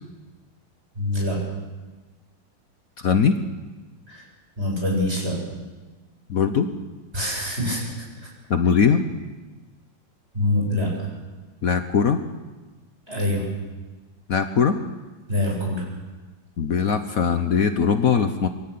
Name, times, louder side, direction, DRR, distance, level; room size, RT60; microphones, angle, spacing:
voice 1, 1.0-1.4 4.1-4.2 4.6-5.4 7.1-7.8 10.3-10.9 13.1-13.4 15.3-15.8, left 1 dB, 35° right, -2 dB, 8.4 m, -24 dB
voice 2, 3.0-3.3 6.3-6.7 8.5-9.0 11.6-12.2 14.3-14.7 16.6-18.5, left 6 dB, 55° left, 8 dB, 1.3 m, -20 dB
24.0 x 16.5 x 8.7 m, 1.2 s
omnidirectional pair, 2.0 m